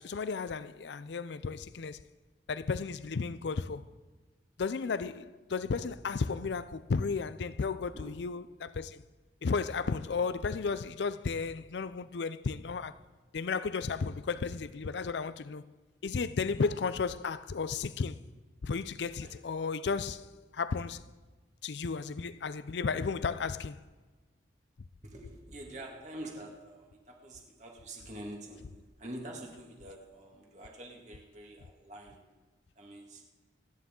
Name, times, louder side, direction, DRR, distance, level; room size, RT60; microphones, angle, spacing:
voice 1, 0.0-2.0 2.5-3.8 4.6-5.2 5.5-9.0 9.4-13.0 13.3-15.6 16.0-18.2 18.6-21.0 21.6-23.8, left 5 dB, 70° left, 0.5 m, -33 dB
voice 2, 4.9-5.2 7.9-8.2 19.2-19.3 25.0-32.3 32.8-33.3, right 1 dB, 40° right, 2.1 m, -46 dB
27.5 x 9.6 x 3.8 m
head